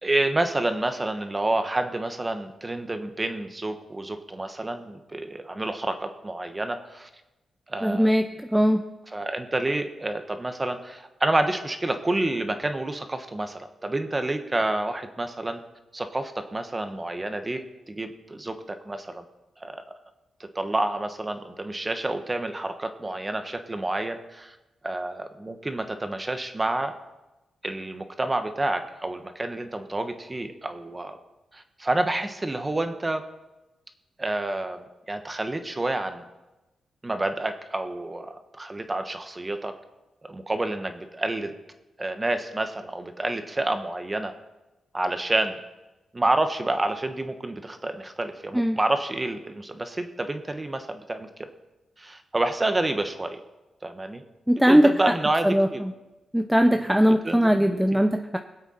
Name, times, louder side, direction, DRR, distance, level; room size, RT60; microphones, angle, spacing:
voice 1, 0.0-7.1 7.7-8.2 9.1-15.6 15.9-19.2 19.6-19.8 20.4-24.6 24.8-26.9 27.6-31.2 31.5-33.2 34.2-36.3 37.0-39.7 40.2-41.5 42.0-44.3 44.9-45.6 46.1-51.5 52.0-53.4 53.8-54.2 54.7-55.8 56.7-58.0, right 2 dB, 20° right, 7 dB, 1.2 m, -29 dB
voice 2, 7.8-8.3 8.5-8.8 48.5-48.8 54.5-54.9 55.5-55.7 56.3-58.4, equal, 5° right, 6 dB, 0.6 m, -19 dB
22.0 x 8.1 x 4.3 m, 1.0 s
cardioid pair, 105°, 0 cm